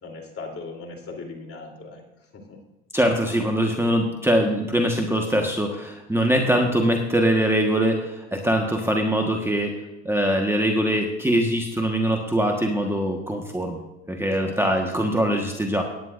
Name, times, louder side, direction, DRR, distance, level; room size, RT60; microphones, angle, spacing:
voice 1, 0.0-2.6 14.3-14.9, left 3 dB, 35° left, 1 dB, 3.4 m, -39 dB
voice 2, 2.9-13.8 14.1-15.8, equal, 5° right, 2 dB, 1.4 m, -22 dB
18.5 x 9.8 x 2.6 m, 1.0 s
hypercardioid pair, 75°, 39 cm